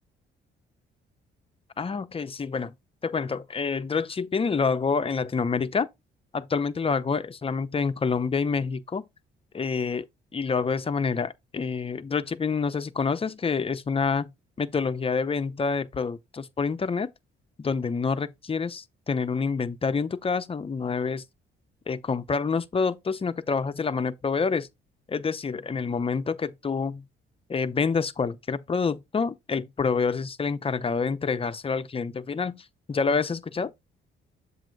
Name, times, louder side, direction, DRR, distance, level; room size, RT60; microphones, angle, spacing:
voice 1, 1.8-2.7 3.0-5.9 6.3-9.1 9.5-10.1 10.3-14.3 14.6-17.1 17.6-21.2 21.9-24.7 25.1-27.0 27.5-33.7, left 5 dB, 30° left, 0.7 m, -27 dB
7.4 x 2.7 x 5.2 m
cardioid pair, 90°, 20 cm